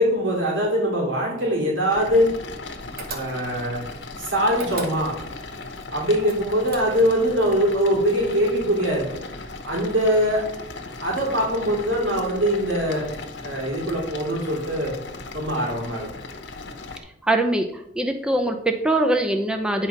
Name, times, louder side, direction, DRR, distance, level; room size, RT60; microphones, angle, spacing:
voice 1, 0.0-2.3 3.1-3.9 4.2-5.2 5.9-9.1 9.6-10.5 11.0-13.1 13.4-14.9 15.3-16.1, equal, 75° right, -3 dB, 2.8 m, -22 dB
sound 1, 1.9-17.0, left 3 dB, 65° left, 1.0 m, -37 dB
sound 2, 3.0-3.7 4.5-5.4 6.2-7.2, right 3 dB, 50° right, 1.2 m, -36 dB
voice 2, 17.2-19.9, right 1 dB, 5° right, 4 dB, 0.5 m, -22 dB
9.3 x 4.2 x 5.8 m, 0.75 s
head